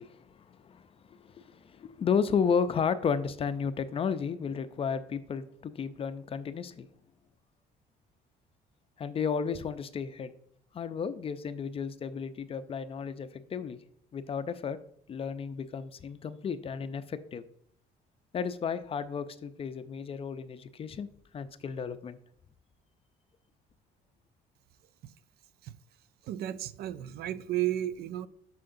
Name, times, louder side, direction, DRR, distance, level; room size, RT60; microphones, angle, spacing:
voice 1, 0.0-6.9 9.0-10.3 10.7-13.8 14.1-14.8 15.1-17.4 18.3-21.1 21.3-22.2, left 6 dB, 35° left, 0.4 m, -33 dB
voice 2, 26.2-28.3, right 13 dB, 70° right, 0.4 m, -33 dB
7.4 x 5.7 x 2.6 m
cardioid pair, 110°, 17 cm